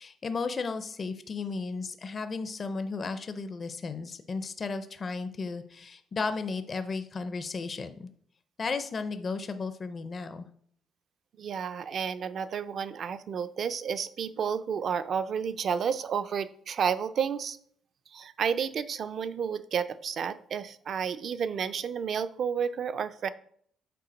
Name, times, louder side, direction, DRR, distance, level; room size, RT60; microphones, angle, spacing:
voice 1, 0.0-8.1 8.6-10.5, left 4 dB, 30° left, 10 dB, 0.4 m, -34 dB
voice 2, 11.4-17.6 18.1-23.3, right 7 dB, 45° right, 12 dB, 0.4 m, -31 dB
6.7 x 4.3 x 5.1 m, 0.62 s
cardioid pair, 155°, 0 cm